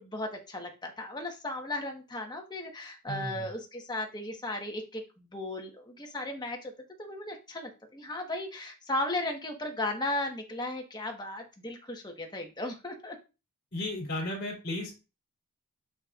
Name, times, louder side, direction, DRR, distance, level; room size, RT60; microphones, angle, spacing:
voice 1, 0.0-6.7 7.0-13.2, left 1 dB, 20° left, 3 dB, 1.4 m, -36 dB
voice 2, 3.1-3.5 13.7-14.9, left 1 dB, 50° left, -5 dB, 3.1 m, -34 dB
6.9 x 6.4 x 2.5 m, 0.29 s
head